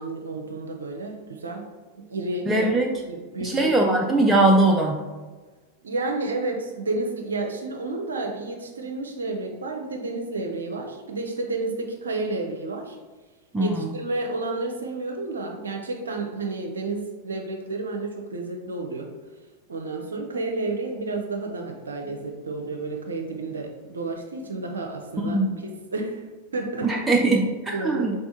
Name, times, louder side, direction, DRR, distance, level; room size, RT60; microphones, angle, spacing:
voice 1, 0.0-1.6 2.1-2.8 3.1-3.9 5.8-13.0 13.6-19.1 19.7-25.4 25.9-26.2 26.5-27.0 27.7-28.1, right 2 dB, 70° right, 2 dB, 0.6 m, -31 dB
voice 2, 2.5-2.9 3.4-5.0 13.5-13.9 25.2-25.6 26.8-28.1, right 2 dB, 10° right, 0 dB, 0.4 m, -21 dB
3.5 x 3.4 x 4.1 m, 1.3 s
figure-of-eight pair, 90°, 0 cm